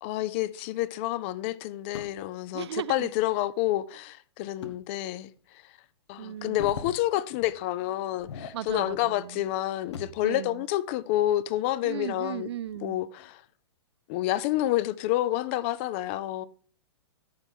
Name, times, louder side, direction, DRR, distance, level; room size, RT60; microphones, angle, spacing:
voice 1, 0.0-5.3 6.1-12.5 12.8-13.4 14.1-16.5, left 14 dB, 25° left, 0.4 m, -29 dB
sound 1, 1.9-2.3 4.6-4.8 5.4-5.5 6.3-7.0 7.4-7.6 8.1-9.0 9.4-10.3 11.8-13.0 13.4-13.5 14.2-14.6, left 6 dB, 80° left, 1.2 m, -42 dB
voice 2, 2.5-3.1 6.2-6.8 8.5-9.5 10.2-10.6 11.8-13.0, right 11 dB, 75° right, 0.5 m, -36 dB
14.5 x 5.9 x 3.5 m
hypercardioid pair, 165°, 14 cm